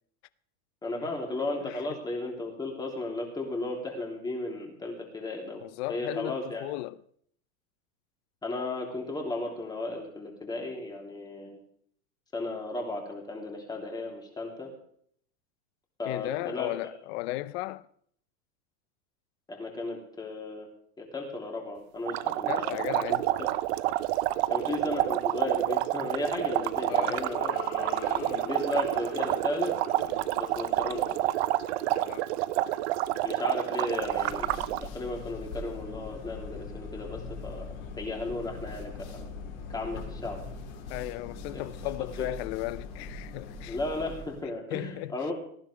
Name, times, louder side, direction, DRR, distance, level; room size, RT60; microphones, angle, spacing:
voice 1, 0.8-5.6 5.9-6.6 8.4-11.6 12.3-14.7 16.0-16.7 19.5-20.7 21.0-22.7 23.4-23.5 24.5-27.9 28.4-29.7 30.4-31.3 33.2-34.5 34.8-37.7 38.0-39.3 39.7-40.4 41.5-41.6 42.0-42.3 43.7-45.3, left 2 dB, 10° left, 3.2 m, -35 dB
voice 2, 1.6-2.0 5.6-7.0 16.1-17.9 22.5-23.3 26.9-27.3 31.9-32.2 40.9-43.8 44.7-45.2, left 18 dB, 50° left, 0.7 m, -35 dB
sound 1, 22.1-34.9, right 16 dB, 50° right, 0.7 m, -28 dB
sound 2, 26.6-33.1, left 8 dB, 65° left, 2.7 m, -44 dB
sound 3, 33.9-44.4, left 3 dB, 80° left, 5.1 m, -41 dB
18.0 x 14.5 x 3.4 m
supercardioid pair, 160°, 42 cm